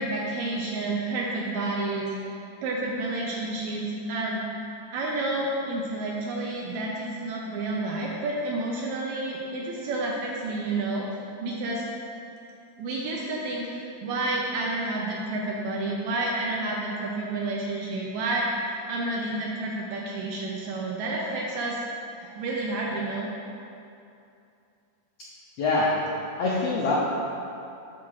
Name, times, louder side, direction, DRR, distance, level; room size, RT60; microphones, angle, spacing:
voice 1, 0.0-2.1 2.6-4.4 4.9-11.1 11.4-11.8 12.8-21.8 22.2-23.3, right 2 dB, 80° right, -2 dB, 1.7 m, -30 dB
voice 2, 25.6-25.9 26.4-26.9, left 3 dB, 85° left, -6 dB, 1.4 m, -24 dB
11.0 x 4.6 x 2.4 m, 2.7 s
omnidirectional pair, 3.7 m